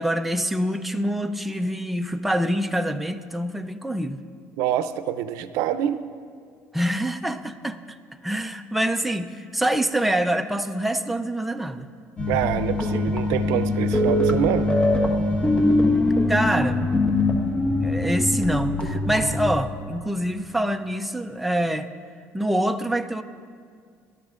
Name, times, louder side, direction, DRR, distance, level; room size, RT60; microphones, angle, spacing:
voice 1, 0.0-4.2 6.7-7.8 8.2-11.9 16.3-16.9 17.8-21.9 22.3-23.2, right 1 dB, ahead, 7 dB, 0.5 m, -25 dB
voice 2, 4.6-6.0 12.3-14.7, right 10 dB, 85° right, 12 dB, 0.5 m, -26 dB
sound 1, 12.2-19.5, left 2 dB, 20° left, 1.5 m, -22 dB
24.0 x 12.5 x 2.5 m, 2.1 s
cardioid pair, 115°, 6 cm